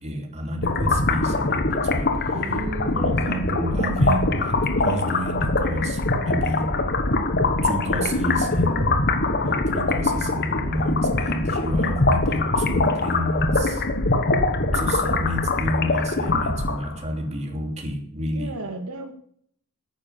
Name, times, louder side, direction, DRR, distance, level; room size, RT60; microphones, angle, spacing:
voice 1, 0.0-2.1 2.9-6.7 7.6-9.0 9.4-13.8 14.7-18.5, equal, 30° right, 1 dB, 2.9 m, -29 dB
sound 1, 0.6-17.0, left 2 dB, 50° left, 1.3 m, -23 dB
voice 2, 2.3-3.0 18.3-19.1, right 2 dB, 90° right, 5 dB, 2.0 m, -34 dB
11.5 x 9.6 x 7.2 m, 0.62 s
head